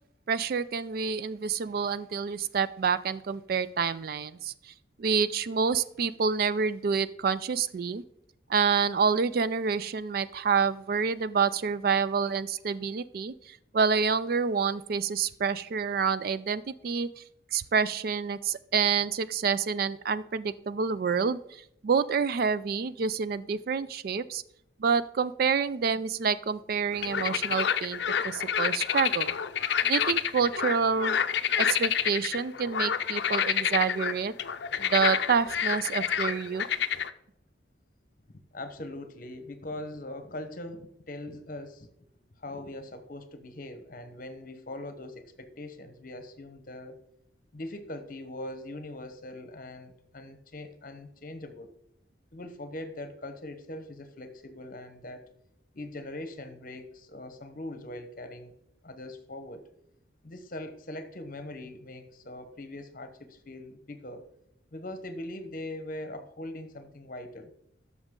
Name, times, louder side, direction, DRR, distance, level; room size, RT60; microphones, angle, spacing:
voice 1, 0.3-4.7 5.0-8.0 8.5-17.2 17.5-24.4 24.8-29.3 29.8-31.2 31.6-34.3 34.8-36.6, right 6 dB, 50° right, 16 dB, 0.3 m, -28 dB
sound 1, 26.9-37.1, left 8 dB, 60° left, 0.5 m, -28 dB
voice 2, 38.3-41.9 42.4-47.0 47.5-51.7 52.3-55.2 55.7-58.5 58.8-59.6 60.2-64.3 64.7-67.5, left 1 dB, 45° left, 9 dB, 0.9 m, -41 dB
13.0 x 6.4 x 3.7 m, 0.74 s
head